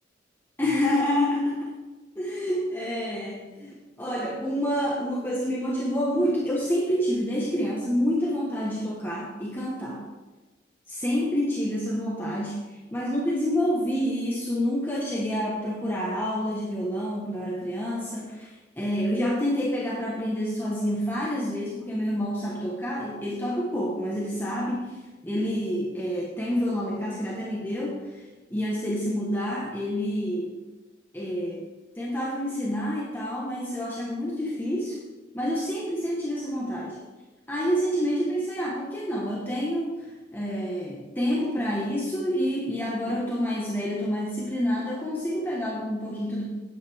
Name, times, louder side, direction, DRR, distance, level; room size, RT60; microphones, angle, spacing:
voice 1, 0.6-1.8 2.1-10.1 10.9-25.0 25.2-30.6 31.1-31.7 31.9-35.0 35.3-37.0 37.5-46.4, equal, 10° left, -4 dB, 1.4 m, -28 dB
12.0 x 9.1 x 3.6 m, 1.2 s
head